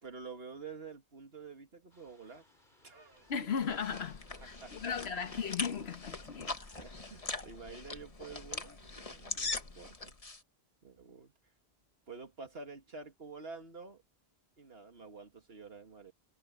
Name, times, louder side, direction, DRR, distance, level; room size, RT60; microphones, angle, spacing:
voice 1, 0.0-2.4 2.8-3.3 4.4-4.7 5.2-5.3 6.6-10.1 10.8-11.3 12.1-14.0 14.6-16.1, right 4 dB, 75° right, 2.2 m, -49 dB
sound 1, 1.9-7.5, left 1 dB, 50° left, 6.6 m, -66 dB
voice 2, 3.3-6.6, left 6 dB, 85° left, 1.5 m, -36 dB
sound 2, 3.3-10.4, left 3 dB, 35° left, 1.5 m, -42 dB
omnidirectional pair, 1.0 m